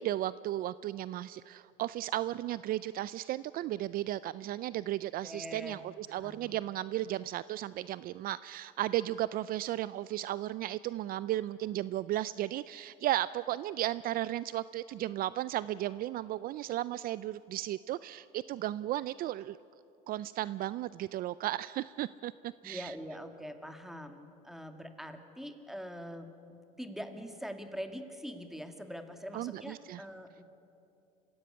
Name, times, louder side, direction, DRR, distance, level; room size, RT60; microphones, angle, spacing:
voice 1, 0.0-19.6 20.1-22.9 29.3-30.0, right 14 dB, 55° right, 18 dB, 0.4 m, -35 dB
voice 2, 5.2-5.8 6.1-6.5 22.6-30.4, equal, ahead, 6 dB, 2.1 m, -43 dB
25.0 x 16.0 x 9.7 m, 2.8 s
supercardioid pair, 95°, 18 cm